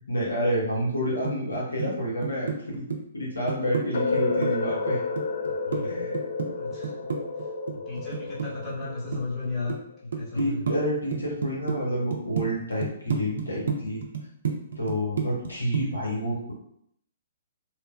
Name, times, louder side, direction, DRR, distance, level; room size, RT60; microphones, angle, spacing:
voice 1, 0.0-2.8 3.1-5.0 5.8-6.2 10.3-14.0 14.8-16.5, equal, 85° left, -4 dB, 0.8 m, -29 dB
sound 1, 1.2-1.9 2.2-3.9 4.2-5.8 6.1-8.9 9.1-9.8 10.1-10.8 11.1-11.8 12.1-12.4 12.8-15.5 15.7-16.0, right 6 dB, 65° right, 0.4 m, -30 dB
sound 2, 3.9-9.8, left 4 dB, 60° left, 0.3 m, -31 dB
voice 2, 5.4-5.9 6.5-6.9 7.4-7.5 7.9-10.6 16.1-16.4, left 3 dB, 15° left, -8 dB, 1.0 m, -35 dB
2.9 x 2.1 x 2.3 m, 0.72 s
figure-of-eight pair, 125°, 0 cm